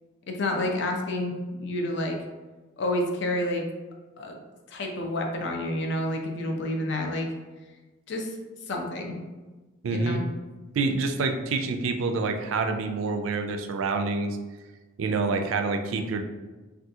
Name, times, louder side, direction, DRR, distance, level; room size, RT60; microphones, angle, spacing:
voice 1, 0.3-2.2 2.8-3.6 4.2-4.4 4.7-7.3 8.1-8.3 8.7-9.2 9.9-10.2, left 1 dB, 60° left, 2 dB, 0.5 m, -29 dB
voice 2, 9.8-10.2 10.7-14.4 15.0-16.2, right 3 dB, 75° right, 6 dB, 0.3 m, -27 dB
2.7 x 2.4 x 3.5 m, 1.2 s
head